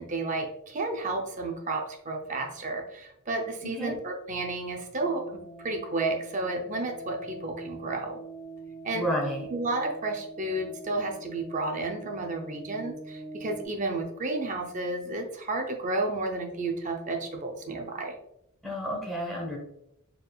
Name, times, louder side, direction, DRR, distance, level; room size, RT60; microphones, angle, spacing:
voice 1, 0.0-8.2 8.8-9.1 9.5-18.2, right 2 dB, 35° right, 3 dB, 0.5 m, -32 dB
sound 1, 5.0-13.7, right 2 dB, 30° left, 1.2 m, -44 dB
voice 2, 8.9-9.5 18.6-19.6, equal, ahead, -3 dB, 1.0 m, -30 dB
4.5 x 3.4 x 2.3 m, 0.79 s
head